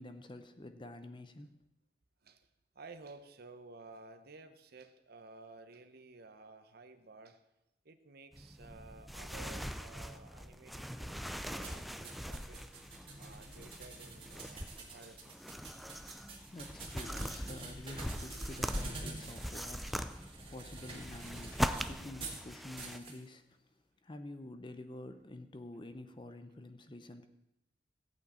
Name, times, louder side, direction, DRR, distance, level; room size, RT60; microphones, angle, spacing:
voice 1, 0.0-1.5 16.0-23.6 24.0-27.3, left 2 dB, 25° left, 0.7 m, -49 dB
voice 2, 2.7-7.4 7.8-12.6 13.2-15.4, right 3 dB, 55° right, 0.9 m, -54 dB
sound 1, 8.3-23.0, equal, ahead, 0.3 m, -41 dB
sound 2, 11.6-22.4 22.8-23.2, right 3 dB, 30° right, 2.0 m, -48 dB
14.5 x 8.3 x 4.3 m
head